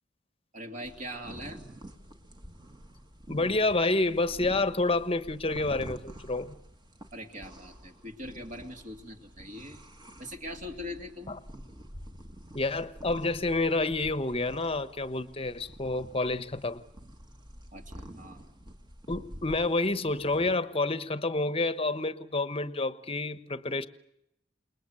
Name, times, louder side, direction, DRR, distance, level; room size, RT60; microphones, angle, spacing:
voice 1, 0.5-1.6 7.1-9.8 10.2-11.4 17.7-18.5, equal, 45° right, 2.6 m, -41 dB
sound 1, 0.8-20.5, equal, 25° right, 1.7 m, -48 dB
voice 2, 3.3-6.6 11.3-11.4 12.5-16.8 19.1-23.9, left 2 dB, 30° left, 1.1 m, -29 dB
28.5 x 21.0 x 8.0 m
head